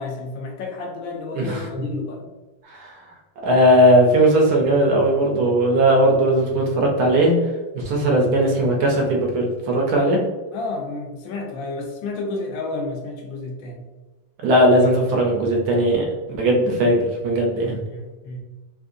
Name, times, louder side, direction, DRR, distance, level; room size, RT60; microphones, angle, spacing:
voice 1, 0.0-2.2 7.9-8.2 10.5-13.9 17.6-18.4, left 2 dB, 75° left, 2 dB, 1.4 m, -31 dB
voice 2, 1.3-1.9 2.7-2.9 3.4-7.3 7.7-10.2 14.4-17.8, right 1 dB, 65° right, 0 dB, 1.0 m, -18 dB
3.6 x 2.7 x 2.5 m, 1.2 s
omnidirectional pair, 2.2 m